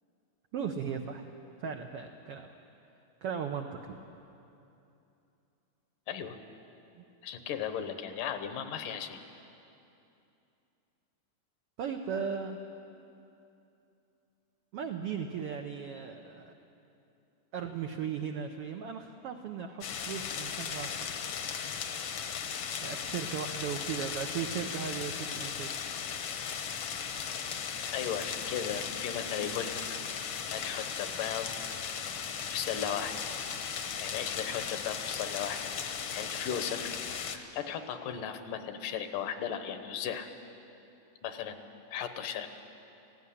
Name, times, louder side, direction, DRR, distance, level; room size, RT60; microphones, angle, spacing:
voice 1, 0.5-1.3 1.6-2.6 3.2-4.0 7.0-7.1 11.8-12.6 14.7-16.5 17.5-21.0 22.8-25.7, right 7 dB, 90° right, 4 dB, 1.3 m, -37 dB
voice 2, 6.1-6.4 7.2-9.2 27.9-29.8 30.5-31.5 32.5-33.2 34.0-35.7 36.1-36.9 37.3-40.3 41.2-41.6 41.9-42.5, left 8 dB, 80° left, 8 dB, 2.6 m, -36 dB
sound 1, 19.8-37.4, left 7 dB, 65° left, 1.4 m, -37 dB
17.0 x 16.0 x 9.9 m, 2.8 s
omnidirectional pair, 3.8 m